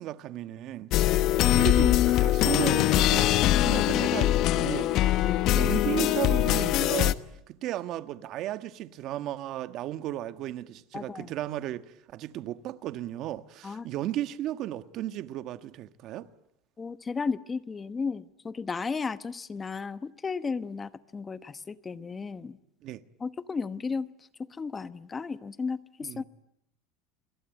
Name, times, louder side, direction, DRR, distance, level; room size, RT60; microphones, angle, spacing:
voice 1, 0.0-0.9 1.4-3.3 3.6-5.0 5.5-7.2 7.5-16.3 22.8-23.0 26.0-26.2, right 13 dB, 50° right, 1.4 m, -34 dB
sound 1, 0.9-7.1, left 14 dB, 50° left, 1.1 m, -23 dB
voice 2, 5.2-5.6 10.9-11.3 13.6-13.9 16.8-22.6 23.2-24.1 24.5-26.2, left 5 dB, 20° left, 1.1 m, -34 dB
29.5 x 22.0 x 9.2 m
supercardioid pair, 130°, 0 cm